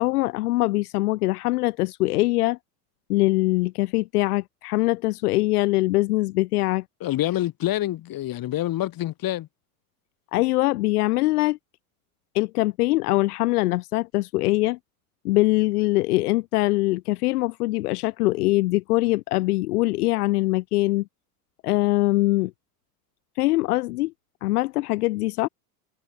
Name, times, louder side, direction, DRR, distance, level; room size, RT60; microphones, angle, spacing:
voice 1, 0.0-2.6 3.1-6.8 10.3-11.6 12.3-14.8 15.2-21.0 21.6-22.5 23.4-24.1 24.4-25.5, left 19 dB, 80° left, 1.1 m, -22 dB
voice 2, 7.0-9.5, left 14 dB, 50° left, 5.2 m, -26 dB
hypercardioid pair, 90°, 45 cm